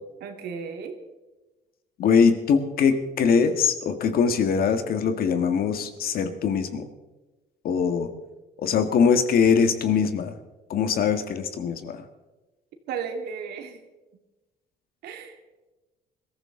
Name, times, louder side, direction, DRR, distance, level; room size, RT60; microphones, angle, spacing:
voice 1, 0.2-1.0 12.9-13.8 15.0-15.4, right 6 dB, 75° right, 5 dB, 2.3 m, -34 dB
voice 2, 2.0-6.9 7.6-8.1 8.6-10.3 10.7-12.0, left 6 dB, 60° left, 8 dB, 1.7 m, -22 dB
21.5 x 14.0 x 3.8 m, 1.1 s
cardioid pair, 110°, 17 cm